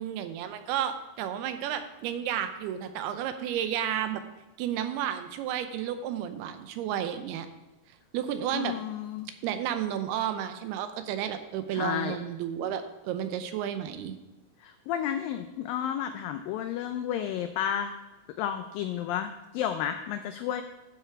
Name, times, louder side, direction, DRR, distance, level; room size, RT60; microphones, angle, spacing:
voice 1, 0.0-4.2 4.6-7.5 8.1-8.7 9.4-14.1, right 10 dB, 80° right, 9 dB, 2.7 m, -32 dB
voice 2, 8.5-9.3 11.7-12.2 14.6-17.9 18.4-20.6, left 9 dB, 85° left, 8 dB, 2.0 m, -32 dB
12.0 x 6.9 x 4.6 m, 1.0 s
omnidirectional pair, 4.6 m